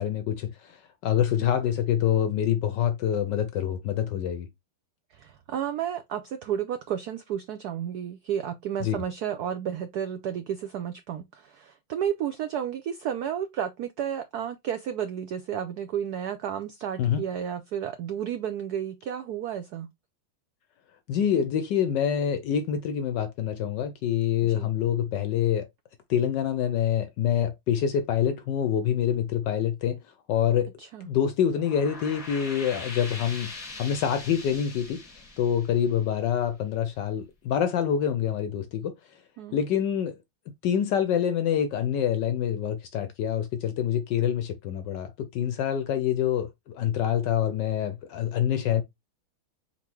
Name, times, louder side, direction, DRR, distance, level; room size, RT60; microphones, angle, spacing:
voice 1, 0.0-4.5 8.8-9.0 17.0-17.2 21.1-25.7 26.1-30.0 30.3-30.7 31.0-33.5 33.8-35.0 35.4-38.9 39.5-40.2 40.6-48.8, left 9 dB, 75° left, 1.0 m, -26 dB
voice 2, 5.1-19.9 24.4-24.7 30.8-31.1 39.4-39.6, right 9 dB, 85° right, 0.8 m, -32 dB
sound 1, 31.4-36.7, left 3 dB, 35° left, 0.6 m, -42 dB
4.2 x 4.0 x 3.0 m
omnidirectional pair, 2.3 m